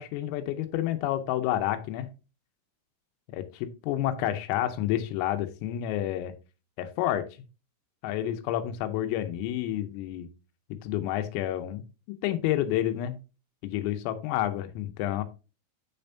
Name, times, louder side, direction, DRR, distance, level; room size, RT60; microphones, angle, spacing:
voice 1, 0.0-2.1 3.3-6.3 6.8-7.2 8.0-10.3 10.8-11.8 12.2-13.2 13.6-15.2, left 12 dB, 90° left, 8 dB, 3.6 m, -29 dB
9.3 x 6.8 x 2.7 m, 0.30 s
omnidirectional pair, 5.8 m